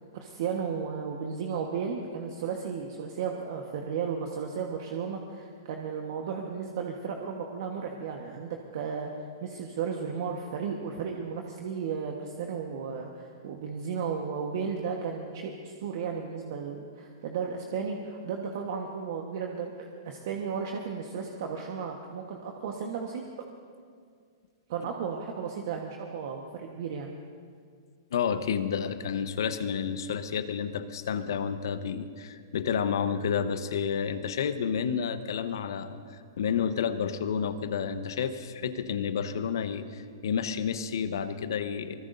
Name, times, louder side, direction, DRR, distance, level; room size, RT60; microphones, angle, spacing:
voice 1, 0.1-23.2 24.7-27.1, right 6 dB, 60° right, 2 dB, 1.3 m, -34 dB
voice 2, 28.1-42.0, left 7 dB, 70° left, 10 dB, 1.0 m, -30 dB
24.0 x 20.0 x 2.7 m, 2.2 s
hypercardioid pair, 115°, 2 cm